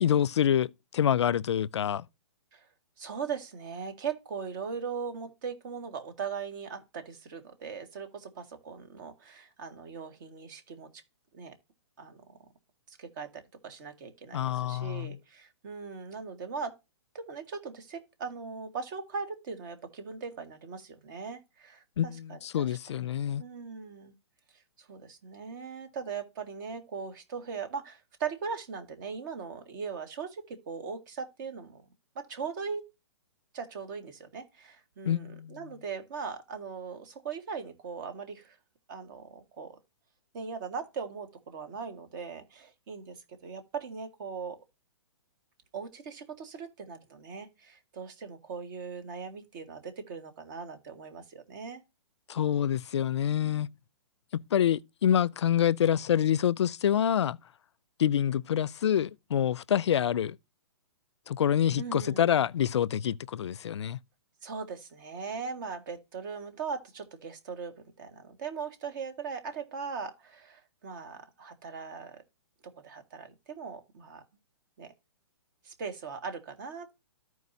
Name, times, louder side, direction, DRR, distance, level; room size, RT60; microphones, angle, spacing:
voice 1, 0.0-2.1 14.3-15.2 22.0-23.4 35.1-35.6 52.3-53.7 54.3-57.4 58.0-60.4 61.3-64.0, left 9 dB, 80° left, 0.4 m, -27 dB
voice 2, 3.0-10.9 11.3-11.5 12.0-12.2 12.9-16.7 17.1-22.7 23.4-24.1 24.8-31.8 32.2-32.9 33.5-38.6 38.9-39.8 40.3-44.6 45.7-51.8 61.8-62.3 64.4-67.7 68.0-72.2 72.8-74.2 74.8-74.9 75.6-76.9, right 5 dB, 45° right, 1.8 m, -39 dB
13.5 x 4.7 x 2.7 m
hypercardioid pair, 145°, 14 cm